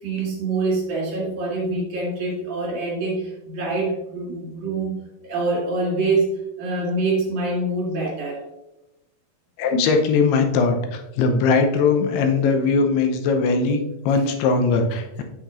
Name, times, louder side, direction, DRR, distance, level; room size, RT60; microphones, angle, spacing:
voice 1, 0.0-4.9 5.2-8.4, right 3 dB, 55° right, -4 dB, 3.2 m, -25 dB
voice 2, 9.6-15.2, left 4 dB, 85° left, 5 dB, 2.8 m, -20 dB
8.6 x 7.3 x 2.5 m, 0.94 s
omnidirectional pair, 4.7 m